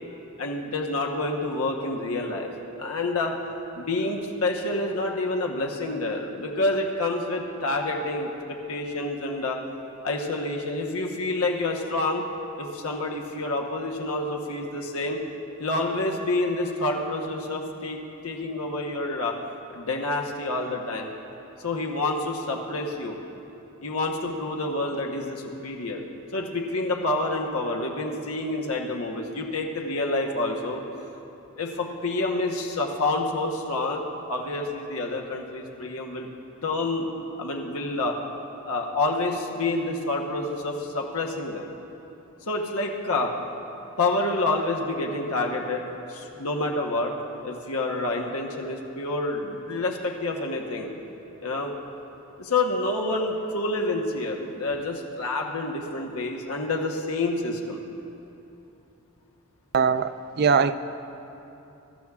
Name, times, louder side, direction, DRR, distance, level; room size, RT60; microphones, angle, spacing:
voice 1, 0.4-2.5 2.8-3.3 3.8-8.3 8.7-9.6 10.0-12.2 12.5-15.2 15.6-18.0 18.2-19.3 19.7-21.1 21.6-23.2 23.8-26.0 26.3-30.8 31.6-34.0 34.3-36.3 36.6-37.1 37.4-38.2 38.6-41.7 42.5-43.3 44.0-45.8 46.1-47.1 47.4-50.9 51.4-51.7 52.4-57.8, left 2 dB, 85° left, 0 dB, 1.0 m, -28 dB
voice 2, 59.7-60.8, right 6 dB, 45° right, 12 dB, 0.3 m, -21 dB
21.5 x 12.5 x 2.4 m, 2.9 s
head